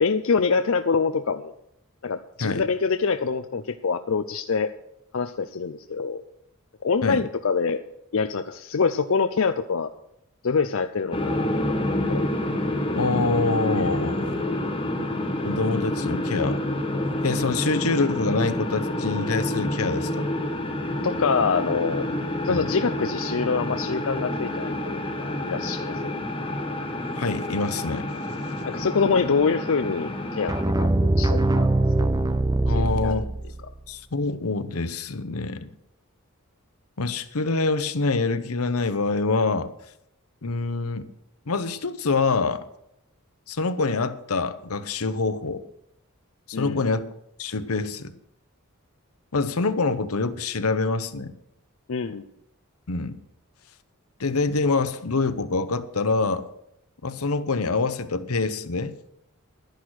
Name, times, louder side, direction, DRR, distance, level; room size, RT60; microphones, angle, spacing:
voice 1, 0.0-1.5 2.0-4.7 5.1-6.2 6.8-7.8 8.1-9.9 10.4-12.3 21.0-22.0 22.4-26.1 28.7-31.7 32.0-32.1 32.7-33.1 46.5-46.9 51.9-52.2, left 5 dB, 65° left, 9 dB, 0.5 m, -25 dB
sound 1, 11.1-30.6, left 1 dB, 25° left, 1.3 m, -28 dB
voice 2, 13.0-14.4 15.4-16.6 17.2-20.3 22.5-22.6 27.2-28.1 32.7-33.3 33.9-35.7 37.0-39.7 40.4-41.1 41.5-42.6 43.5-45.6 46.5-47.1 47.4-48.1 49.3-51.3 52.9-53.2 54.2-56.4 57.0-58.9, left 3 dB, 85° left, 12 dB, 0.9 m, -25 dB
sound 2, 30.5-33.6, right 2 dB, 15° right, 0.7 m, -22 dB
11.5 x 10.5 x 6.4 m, 0.81 s
head